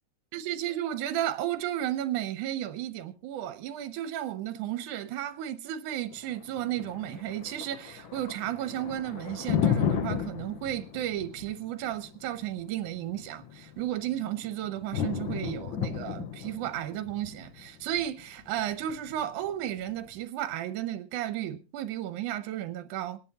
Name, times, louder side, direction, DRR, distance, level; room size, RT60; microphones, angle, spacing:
voice 1, 0.3-23.2, right 12 dB, 85° right, 2.4 m, -33 dB
Thunder, 6.1-20.1, left 9 dB, 85° left, 1.1 m, -34 dB
26.0 x 10.5 x 2.9 m
omnidirectional pair, 3.4 m